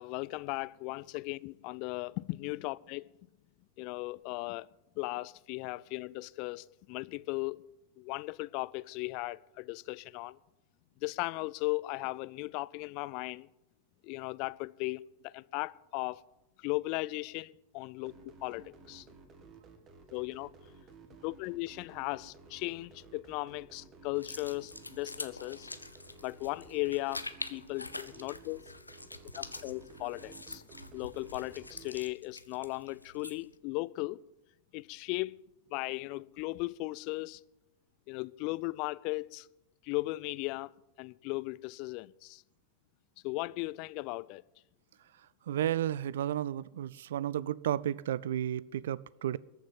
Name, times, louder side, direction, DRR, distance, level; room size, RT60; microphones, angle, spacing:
voice 1, 0.0-3.1 3.8-4.7 5.0-7.6 8.0-10.4 11.0-13.5 14.0-16.2 16.6-18.1 18.4-19.1 20.1-20.5 21.2-25.7 26.2-27.2 27.5-28.6 29.3-30.6 30.9-34.2 34.7-35.4 35.7-37.4 38.1-39.5 39.8-40.7 41.0-42.4 43.2-44.4, left 22 dB, 45° left, 0.4 m, -37 dB
sound 1, 18.1-32.0, right 4 dB, 30° right, 2.0 m, -55 dB
sound 2, 24.1-33.5, left 2 dB, 85° left, 0.7 m, -45 dB
voice 2, 45.5-49.4, right 11 dB, 60° right, 0.4 m, -32 dB
14.0 x 7.1 x 9.0 m
figure-of-eight pair, 90°, 0 cm